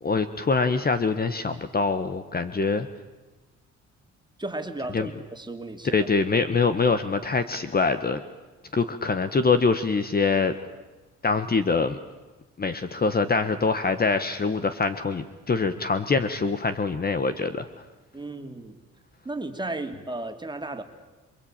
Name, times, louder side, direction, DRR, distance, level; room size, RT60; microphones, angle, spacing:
voice 1, 0.0-2.9 4.9-5.1 5.8-8.2 8.7-10.5 11.2-12.0 12.6-17.7, left 4 dB, 30° left, 10 dB, 1.4 m, -24 dB
voice 2, 4.4-6.1 18.1-18.8 19.2-20.8, right 2 dB, 15° right, 6 dB, 2.9 m, -34 dB
27.0 x 23.0 x 8.9 m, 1.2 s
cardioid pair, 90°, 30 cm